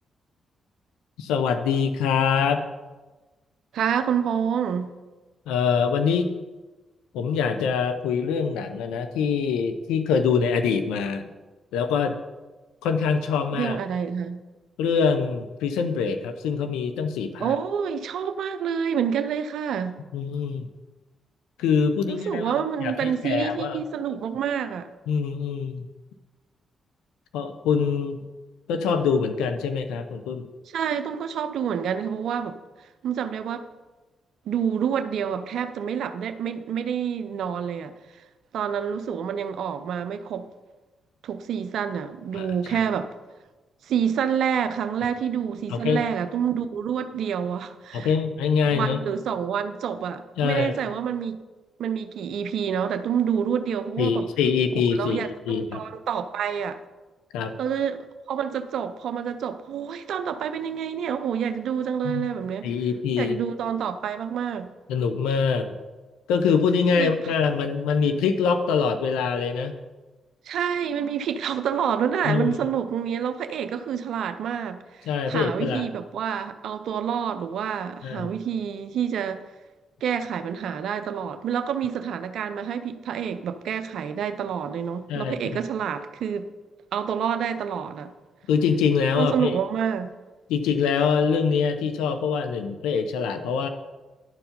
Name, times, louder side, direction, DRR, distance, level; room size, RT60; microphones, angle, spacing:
voice 1, 1.2-2.7 5.5-6.3 7.1-11.3 11.7-12.2 12.8-13.8 14.8-17.6 20.1-20.7 21.6-22.5 22.8-23.8 25.1-25.9 27.3-28.2 28.7-30.5 42.3-42.8 45.7-46.0 47.9-49.0 50.4-50.7 54.0-55.8 57.3-57.6 62.0-62.3 62.6-63.4 64.9-65.8 66.3-69.7 72.2-72.6 75.1-75.9 78.0-78.3 85.1-85.4 88.5-89.5 90.5-93.7, left 6 dB, 80° left, 8 dB, 0.5 m, -24 dB
voice 2, 3.7-4.9 13.6-14.4 17.4-20.0 22.1-24.9 30.7-32.6 33.0-33.7 34.5-38.2 38.5-40.5 41.2-43.1 43.9-48.1 48.6-51.4 51.8-54.3 55.0-56.8 57.6-62.7 63.2-64.7 66.9-67.3 70.5-79.4 80.0-86.5 86.9-88.1 89.2-90.1, right 8 dB, 70° right, 10 dB, 0.5 m, -28 dB
11.0 x 4.6 x 5.2 m, 1.2 s
hypercardioid pair, 45°, 0 cm